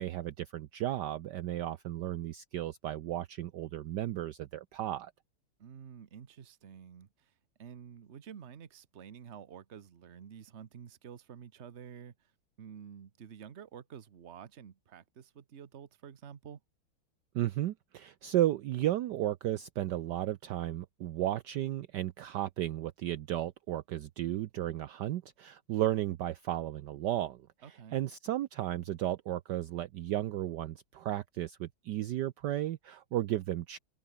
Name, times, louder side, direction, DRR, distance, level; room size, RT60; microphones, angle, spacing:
voice 1, 0.0-5.1 17.3-33.8, right 13 dB, 70° right, 1.2 m, -34 dB
voice 2, 5.6-7.3 7.6-12.3 12.6-16.6 27.6-28.0, right 8 dB, 40° right, 1.2 m, -50 dB
omnidirectional pair, 2.2 m